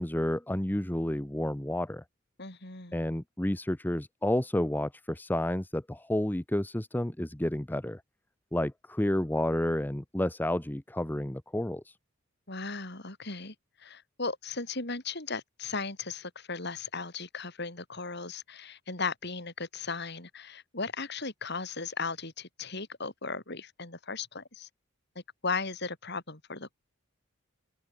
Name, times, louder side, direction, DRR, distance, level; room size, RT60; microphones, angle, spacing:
voice 1, 0.0-2.0 2.9-8.0 8.5-12.0, left 1 dB, 10° left, 0.7 m, -30 dB
voice 2, 2.4-3.0 12.5-13.5 13.8-24.7 25.4-26.7, left 4 dB, 55° left, 5.5 m, -36 dB
open air
head